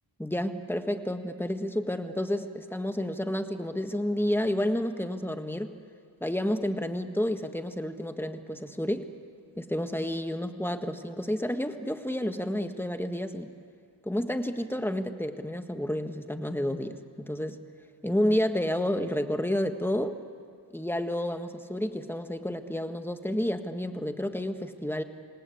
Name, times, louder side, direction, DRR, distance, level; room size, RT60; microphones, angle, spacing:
voice 1, 0.2-5.7 6.2-9.1 9.6-13.5 14.0-17.6 18.0-20.2 20.7-25.0, left 1 dB, 5° left, 7 dB, 1.6 m, -30 dB
28.0 x 18.5 x 8.5 m, 2.3 s
cardioid pair, 50°, 46 cm